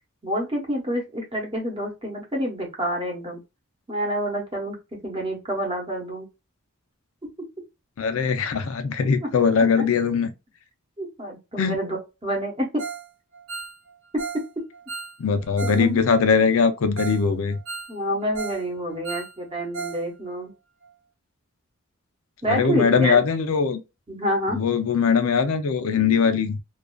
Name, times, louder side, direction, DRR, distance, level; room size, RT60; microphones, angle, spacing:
voice 1, 0.2-3.4 3.9-4.8 5.0-6.3 9.6-9.7 11.0-12.8 15.6-16.0 17.9-20.5 22.4-23.2 24.1-24.6, equal, 25° right, 0.8 m, -28 dB
voice 2, 8.0-10.3 11.6-11.8 15.2-17.6 22.5-23.8 24.5-26.6, left 5 dB, 70° left, 0.4 m, -21 dB
Ringtone, 12.8-13.1 13.3-15.9 16.1-16.2 16.7-16.8 17.0-17.2 17.5-18.7 18.9-20.0 20.3-20.4 20.8-20.9, right 5 dB, 75° right, 0.8 m, -35 dB
2.4 x 2.3 x 2.2 m
head